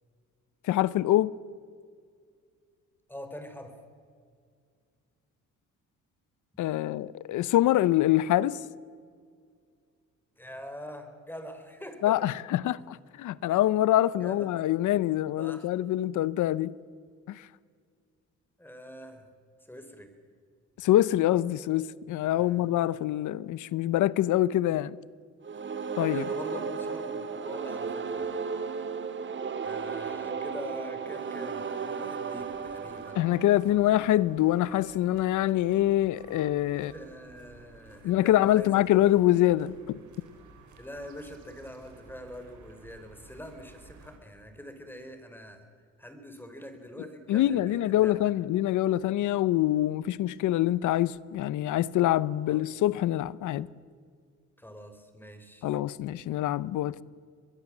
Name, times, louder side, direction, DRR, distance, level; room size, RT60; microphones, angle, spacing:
voice 1, 0.7-1.3 6.6-8.6 12.0-16.7 17.3-17.4 20.8-25.0 26.0-26.2 33.1-36.9 38.0-40.0 47.3-53.7 55.6-57.0, left 14 dB, 80° left, 0.8 m, -25 dB
voice 2, 3.1-3.8 10.4-12.2 13.4-13.5 14.2-14.5 15.4-15.7 18.6-19.3 19.7-20.1 22.4-22.7 26.1-28.4 29.6-33.2 36.7-38.8 40.8-45.7 46.0-48.3 52.4-52.6 54.6-55.7, equal, 5° left, 3.9 m, -44 dB
sound 1, 25.4-34.3, right 5 dB, 40° right, 2.0 m, -35 dB
sound 2, 32.3-44.2, right 4 dB, 75° right, 4.5 m, -54 dB
24.0 x 21.5 x 7.3 m
cardioid pair, 90°, 30 cm